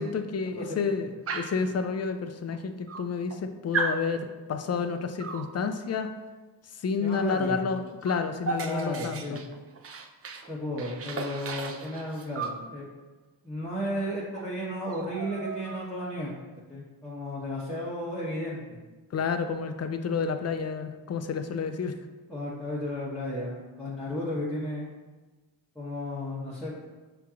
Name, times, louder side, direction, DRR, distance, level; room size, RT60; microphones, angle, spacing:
voice 1, 0.0-6.1 6.8-9.4 19.1-21.9, left 5 dB, 35° left, 8 dB, 0.4 m, -30 dB
Dog, 1.3-1.7 2.5-2.6 2.9-3.4 3.7-4.0 5.2-5.5 7.3-7.5 7.8-10.5 10.8-12.6 13.9-14.0 14.3-14.5 14.8-16.1, right 4 dB, 35° right, 0.4 m, -35 dB
voice 2, 7.0-7.7 8.6-9.4 10.5-12.9 13.4-16.3 16.7-18.8 22.3-24.9 25.7-26.7, equal, ahead, -8 dB, 1.0 m, -34 dB
5.7 x 2.9 x 2.4 m, 1.2 s
cardioid pair, 50°, 45 cm